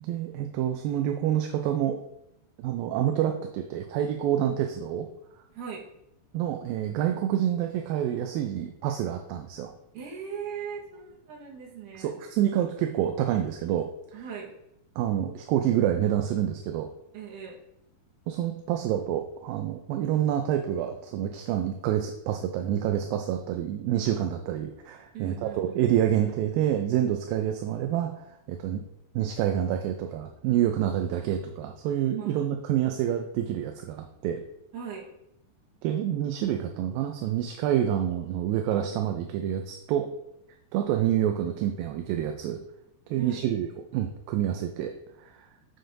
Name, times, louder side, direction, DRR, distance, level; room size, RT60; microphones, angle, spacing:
voice 1, 0.0-2.0 2.6-5.1 6.3-9.7 12.0-13.9 15.0-16.9 18.3-28.8 29.2-34.4 35.8-40.1 40.7-42.6 43.1-45.5, right 10 dB, 80° right, 5 dB, 2.3 m, -27 dB
voice 2, 9.9-12.1 14.1-14.5 17.1-17.6 25.1-25.8 32.2-32.4 34.7-35.1 43.2-43.4, right 7 dB, 65° right, -1 dB, 2.7 m, -39 dB
7.6 x 6.9 x 2.6 m, 0.80 s
omnidirectional pair, 4.2 m